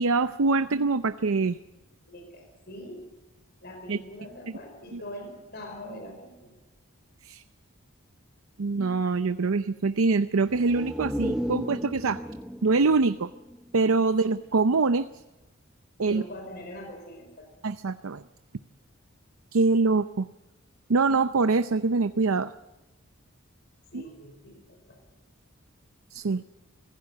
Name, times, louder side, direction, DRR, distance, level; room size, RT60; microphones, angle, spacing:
voice 1, 0.0-1.6 3.9-4.0 4.9-5.0 7.2-7.4 8.6-12.2 12.6-13.3 13.7-15.1 16.0-16.2 17.6-18.2 19.5-20.3 20.9-22.5 23.9-24.0 26.1-26.4, right 3 dB, 80° right, 12 dB, 0.6 m, -24 dB
voice 2, 2.1-3.0 3.6-6.5 16.1-17.5 23.9-25.0, left 1 dB, 50° left, 3 dB, 4.8 m, -43 dB
sound 1, 10.5-14.2 14.6-14.7, equal, 5° right, 1.0 m, -35 dB
25.0 x 16.0 x 7.4 m, 1.0 s
head